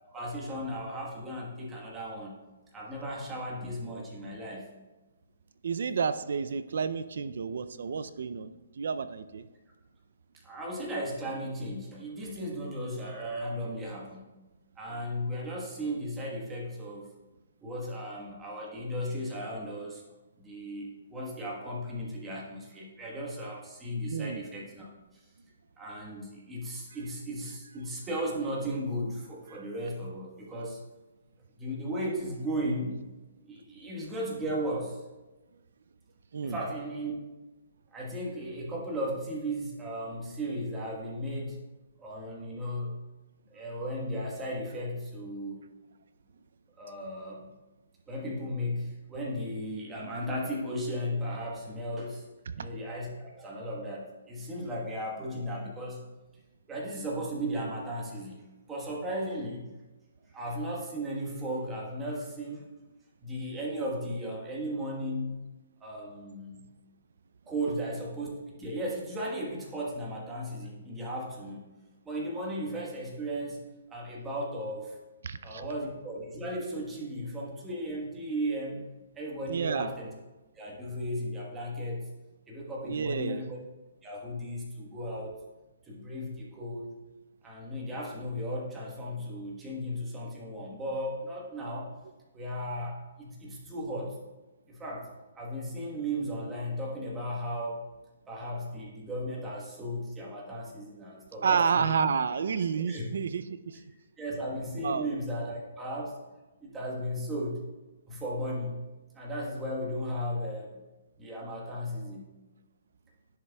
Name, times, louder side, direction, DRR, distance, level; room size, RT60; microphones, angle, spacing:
voice 1, 0.1-2.4 2.7-4.7 10.4-14.3 14.8-17.1 17.6-20.0 20.4-24.9 25.8-30.8 31.6-33.0 33.5-35.0 36.4-37.1 37.9-41.6 42.0-43.0 43.5-45.6 46.8-47.5 48.1-52.2 52.6-56.1 56.7-58.4 58.7-59.7 60.3-62.6 63.2-65.4 65.8-66.7 67.5-68.3 68.6-71.7 72.0-73.6 73.9-75.0 75.4-78.9 79.1-80.1 80.6-82.1 82.5-83.6 84.0-85.4 85.9-86.9 87.4-91.9 92.3-94.2 94.7-95.1 95.3-97.8 98.3-101.9 102.9-103.0 104.2-106.2 106.6-107.6 108.1-108.8 109.1-110.8 111.2-112.3, equal, 10° right, -3 dB, 1.3 m, -35 dB
voice 2, 5.6-9.5 23.1-23.3 24.1-24.4 29.5-29.6 36.3-36.6 52.5-52.7 75.2-75.7 79.5-79.9 82.9-83.4 101.4-103.8 104.8-105.1, right 6 dB, 65° right, 12 dB, 0.4 m, -30 dB
10.5 x 6.6 x 2.3 m, 1.1 s
hypercardioid pair, 160°, 0 cm